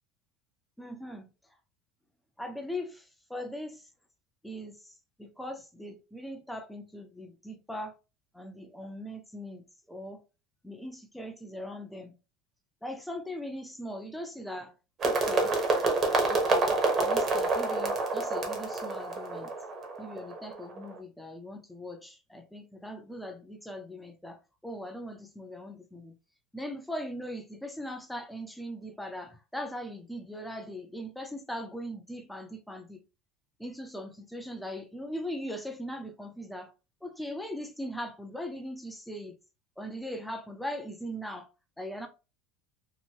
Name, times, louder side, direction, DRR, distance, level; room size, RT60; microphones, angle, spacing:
voice 1, 0.8-1.3 2.4-3.9 4.4-8.0 8.3-10.2 10.6-12.2 12.8-14.7 15.0-15.6 16.3-19.5 20.0-26.1 26.5-33.0 33.6-36.7 37.0-39.4 39.8-41.5 41.8-42.1, equal, 5° left, 0.5 m, -40 dB
sound 1, 15.0-20.9, right 3 dB, 30° right, 0.9 m, -28 dB
3.0 x 2.6 x 2.7 m
cardioid pair, 155°, 0 cm